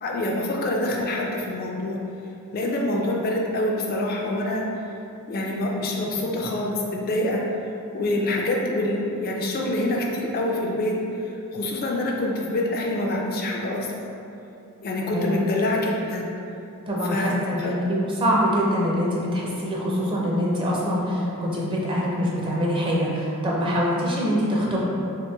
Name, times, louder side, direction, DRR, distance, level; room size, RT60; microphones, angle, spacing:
voice 1, 0.0-2.0 2.5-4.6 5.3-7.4 7.9-11.0 11.3-13.9 14.8-16.2 17.0-17.7, left 1 dB, 40° left, -1 dB, 0.3 m, -26 dB
voice 2, 15.1-15.5 16.9-24.8, equal, 25° right, -5 dB, 0.5 m, -24 dB
2.9 x 2.5 x 3.4 m, 2.8 s
head